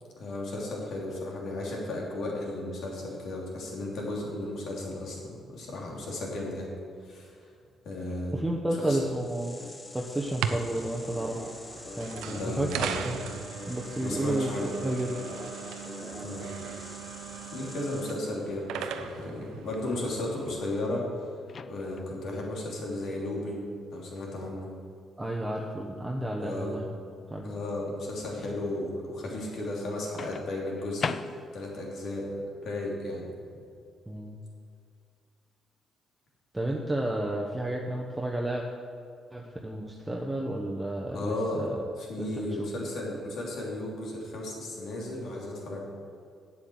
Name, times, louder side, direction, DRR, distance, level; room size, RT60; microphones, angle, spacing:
voice 1, 0.2-6.7 7.0-7.3 7.8-8.4 8.8-9.0 12.2-13.0 14.0-14.8 16.2-16.5 17.5-21.3 21.7-24.7 26.4-26.7 27.4-32.3 32.6-33.3 41.1-41.6 42.0-45.8, left 1 dB, 70° left, -2 dB, 3.1 m, -34 dB
voice 2, 8.3-9.6 9.9-11.4 11.9-13.2 13.7-15.2 25.2-26.9 27.3-27.5 34.1-34.4 36.5-38.6 39.3-41.8 42.2-42.7, right 1 dB, 10° right, -2 dB, 1.1 m, -31 dB
sound 1, 9.0-18.5, left 2 dB, 25° left, 1.0 m, -45 dB
sound 2, 10.2-20.5, right 7 dB, 90° right, 0.6 m, -38 dB
Microwave oven, 21.5-22.2 24.2-24.4 30.2-31.8, left 6 dB, 45° left, 0.4 m, -37 dB
8.8 x 8.0 x 7.9 m, 2.3 s
cardioid pair, 90°, 0 cm